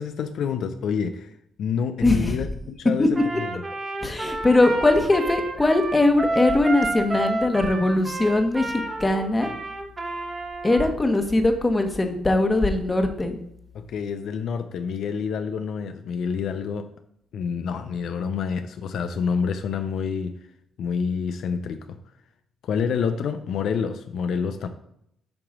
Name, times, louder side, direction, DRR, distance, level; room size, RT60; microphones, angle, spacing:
voice 1, 0.0-1.3 1.6-3.6 13.7-16.9 17.3-20.3 20.8-22.0 22.6-24.7, left 6 dB, 70° left, 8 dB, 0.5 m, -28 dB
voice 2, 2.0-2.3 3.0-3.1 4.0-9.5 10.6-13.4, left 2 dB, 20° left, 5 dB, 1.2 m, -21 dB
Trumpet, 3.1-10.9, right 2 dB, 30° right, 1.3 m, -30 dB
8.6 x 3.0 x 6.1 m, 0.74 s
cardioid pair, 90°, 0 cm